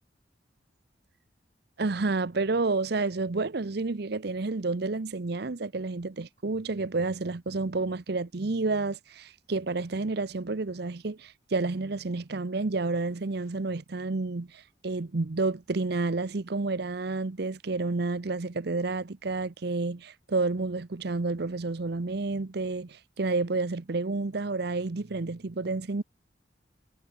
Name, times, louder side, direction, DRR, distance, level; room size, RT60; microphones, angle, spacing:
voice 1, 1.8-26.0, right 3 dB, 60° right, 0.8 m, -30 dB
head